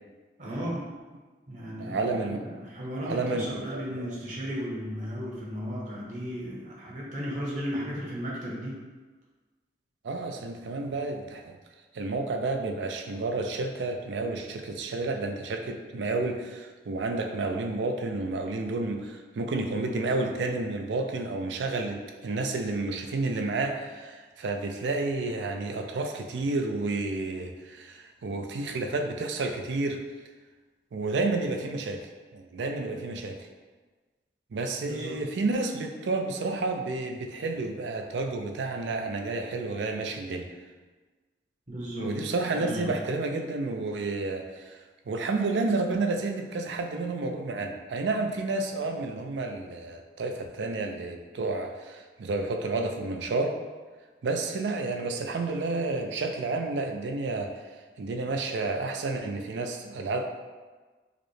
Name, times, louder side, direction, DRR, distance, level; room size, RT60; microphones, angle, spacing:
voice 1, 0.4-0.8 1.5-8.8 34.8-35.3 41.7-42.9, equal, 45° right, -5 dB, 0.8 m, -35 dB
voice 2, 1.8-2.4 3.1-4.2 10.0-11.6 11.9-30.0 30.9-32.0 32.3-33.5 34.5-40.5 42.0-44.8 45.1-53.6 54.2-57.5 58.0-60.2, right 3 dB, 90° right, 4 dB, 0.4 m, -30 dB
4.8 x 2.1 x 3.1 m, 1.3 s
head